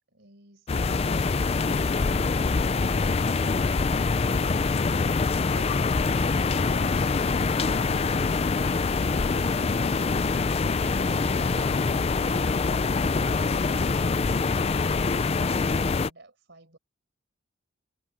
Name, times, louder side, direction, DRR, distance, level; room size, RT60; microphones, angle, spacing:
sound 1, 0.7-16.1, left 4 dB, 30° left, 0.4 m, -24 dB
sound 2, 10.6-14.5, equal, 75° right, 3.1 m, -46 dB
voice 1, 14.1-16.8, right 2 dB, 55° right, 4.9 m, -53 dB
head